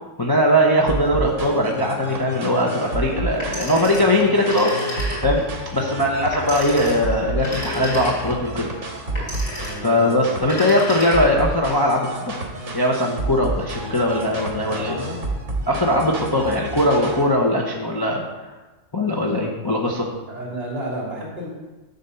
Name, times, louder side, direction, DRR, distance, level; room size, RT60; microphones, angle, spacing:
voice 1, 0.2-5.4 5.7-8.7 9.8-12.4 12.7-15.0 15.6-18.2 18.9-20.1, left 1 dB, 20° left, -2 dB, 0.8 m, -20 dB
sound 1, 0.9-17.3, right 2 dB, 65° right, 1.8 m, -30 dB
Telephone, 3.3-5.5 6.3-8.5 9.1-9.9 10.4-11.5, left 1 dB, 70° left, 3.6 m, -31 dB
voice 2, 14.7-15.1 20.3-21.5, right 1 dB, 50° right, -4 dB, 3.3 m, -31 dB
10.5 x 4.1 x 6.9 m, 1.2 s
omnidirectional pair, 1.4 m